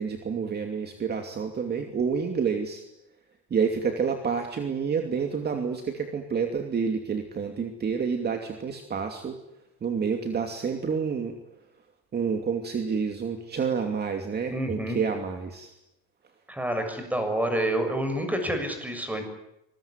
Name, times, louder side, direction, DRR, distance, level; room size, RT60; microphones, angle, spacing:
voice 1, 0.0-2.8 3.5-9.4 9.8-11.4 12.1-15.7, right 6 dB, 30° right, 5 dB, 2.7 m, -29 dB
voice 2, 14.5-15.0 16.5-19.2, right 1 dB, 5° right, 6 dB, 6.8 m, -28 dB
25.0 x 21.0 x 9.9 m, 0.84 s
cardioid pair, 140°, 31 cm